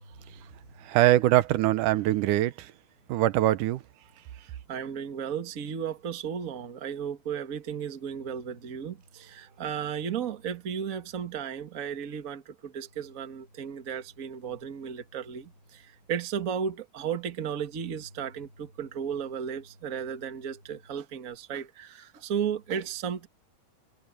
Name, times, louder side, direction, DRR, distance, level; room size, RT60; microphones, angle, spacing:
voice 1, 0.1-0.5 4.7-23.3, right 7 dB, 35° right, 1.4 m, -34 dB
voice 2, 0.8-2.7 3.1-3.8, right 15 dB, 85° right, 2.3 m, -23 dB
omnidirectional pair, 3.6 m